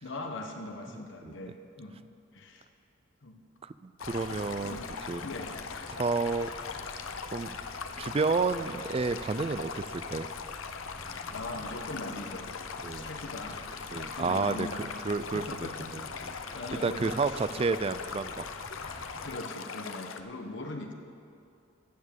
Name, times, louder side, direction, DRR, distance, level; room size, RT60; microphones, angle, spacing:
voice 1, 0.0-2.0 2.3-2.7 3.2-3.4 4.3-4.9 5.2-5.5 11.3-12.5 12.9-13.6 14.1-14.9 15.3-16.1 16.5-17.5 19.2-20.9, left 2 dB, 60° left, 3 dB, 1.1 m, -41 dB
voice 2, 3.6-4.8 5.1-5.2 5.9-6.5 7.3-7.6 8.0-10.3 12.8-13.1 13.9-14.7 15.0-16.3 16.8-18.4, right 4 dB, 30° right, 13 dB, 0.4 m, -30 dB
Stream, 4.0-20.2, left 5 dB, 75° left, 0.7 m, -40 dB
sound 1, 4.0-19.4, left 2 dB, 25° left, 0.8 m, -48 dB
14.5 x 7.4 x 7.4 m, 2.5 s
head